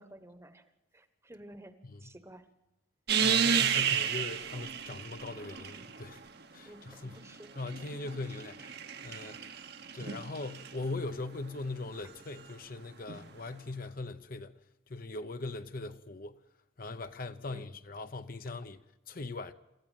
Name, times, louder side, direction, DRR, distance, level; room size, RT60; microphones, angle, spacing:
voice 1, 0.0-2.5 6.6-7.5 17.5-17.7, right 1 dB, 15° right, 1.2 m, -52 dB
voice 2, 3.1-6.2 6.5-7.2 7.5-9.6 9.9-14.5 14.9-16.4 16.8-18.8 19.1-19.5, left 2 dB, 45° left, 0.8 m, -40 dB
sound 1, 3.1-6.2 7.3-10.7 13.1-13.2, right 7 dB, 50° right, 1.2 m, -32 dB
27.0 x 14.5 x 9.2 m
head